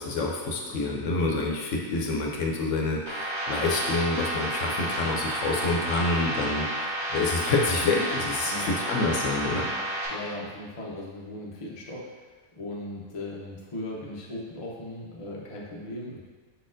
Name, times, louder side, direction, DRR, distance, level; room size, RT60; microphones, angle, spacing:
voice 1, 0.0-9.7, left 3 dB, 70° left, -1 dB, 1.0 m, -27 dB
sound 1, 3.1-10.1, right 1 dB, 25° right, 0.9 m, -31 dB
voice 2, 8.5-8.8 10.1-12.3 12.5-16.2, left 1 dB, 35° left, -3 dB, 0.6 m, -38 dB
4.9 x 4.2 x 2.5 m, 1.4 s
omnidirectional pair, 1.4 m